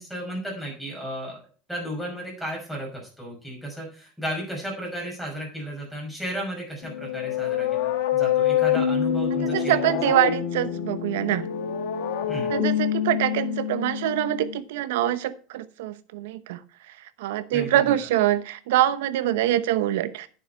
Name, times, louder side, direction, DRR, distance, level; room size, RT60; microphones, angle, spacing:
voice 1, 0.0-1.4 1.7-9.8 12.3-12.5 17.5-18.0, equal, 5° right, -3 dB, 5.7 m, -34 dB
sound 1, 6.8-14.6, left 9 dB, 75° left, 1.7 m, -26 dB
voice 2, 9.5-11.5 12.5-20.3, right 13 dB, 85° right, 14 dB, 0.9 m, -24 dB
9.9 x 7.1 x 4.6 m, 0.39 s
supercardioid pair, 120°, 0 cm